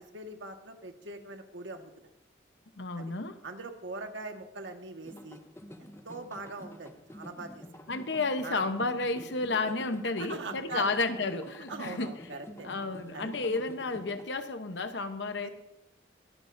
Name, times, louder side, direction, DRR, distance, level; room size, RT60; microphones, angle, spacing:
voice 1, 0.0-2.1 3.0-3.1 3.4-5.4 6.0-7.6 8.4-8.6 10.2-11.0 11.7-12.7 13.1-13.3 15.4-15.5, right 3 dB, 80° right, 4 dB, 1.6 m, -42 dB
voice 2, 2.8-3.4 7.9-12.1 12.6-15.5, left 3 dB, 70° left, 9 dB, 0.9 m, -32 dB
sound 1, 5.0-14.2, equal, 15° left, 0.6 m, -48 dB
24.0 x 11.5 x 2.6 m, 0.93 s
head